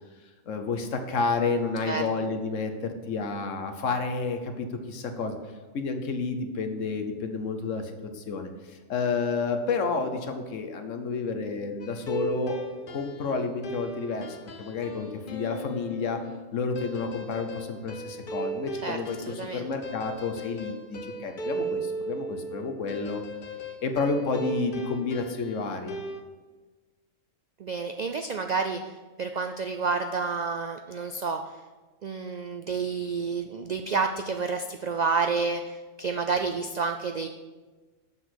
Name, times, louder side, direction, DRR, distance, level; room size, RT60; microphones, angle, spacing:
voice 1, 0.5-5.4 5.7-16.2 16.5-19.2 19.5-23.2 23.8-26.0, left 4 dB, 75° left, 6 dB, 1.3 m, -30 dB
sound 1, 11.8-26.2, right 2 dB, 45° left, 0.9 m, -37 dB
voice 2, 19.3-19.7 27.6-31.6 32.0-37.3, right 4 dB, 70° right, 6 dB, 0.4 m, -29 dB
7.7 x 6.0 x 6.3 m, 1.3 s
omnidirectional pair, 1.3 m